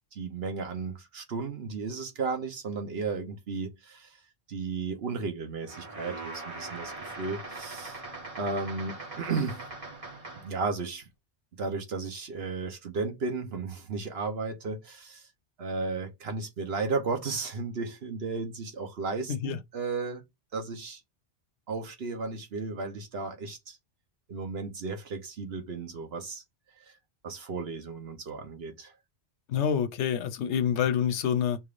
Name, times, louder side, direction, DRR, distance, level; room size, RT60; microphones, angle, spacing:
voice 1, 0.1-4.2 4.5-8.0 8.4-9.6 10.4-11.1 11.6-15.3 15.6-20.2 20.5-21.0 21.7-23.8 24.3-26.4 26.8-26.9 27.2-28.9, right 4 dB, 65° right, 1.1 m, -34 dB
sound 1, 5.6-10.6, right 2 dB, 30° right, 1.2 m, -41 dB
voice 2, 29.5-31.6, left 8 dB, 85° left, 0.9 m, -27 dB
5.3 x 3.4 x 2.5 m
omnidirectional pair, 1.1 m